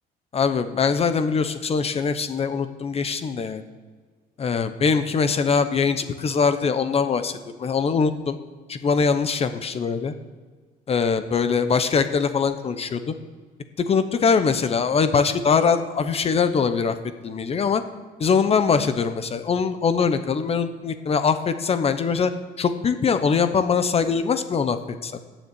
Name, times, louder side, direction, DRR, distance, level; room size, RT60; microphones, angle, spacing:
voice 1, 0.3-3.6 4.4-8.4 8.7-10.1 10.9-13.1 13.8-17.0 17.2-17.8 18.2-22.3 22.6-25.1, left 5 dB, 35° left, 10 dB, 0.8 m, -22 dB
9.4 x 7.4 x 8.3 m, 1.5 s
cardioid pair, 110°, 17 cm